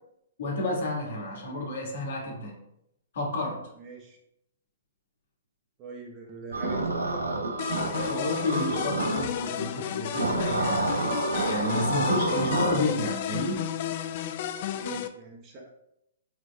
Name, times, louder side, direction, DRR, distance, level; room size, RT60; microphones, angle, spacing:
voice 1, 0.4-2.5 3.1-3.6 8.0-11.1 11.3-13.6, left 2 dB, 65° left, -1 dB, 1.6 m, -31 dB
voice 2, 3.8-4.2 5.8-7.2 14.7-15.7, right 3 dB, 35° right, 0 dB, 0.9 m, -41 dB
sound 1, 6.5-9.3 10.1-12.8, right 2 dB, 90° right, 0.5 m, -28 dB
sound 2, 7.6-15.1, left 10 dB, 50° left, 0.3 m, -33 dB
4.4 x 4.4 x 2.3 m, 0.79 s
hypercardioid pair, 125°, 0 cm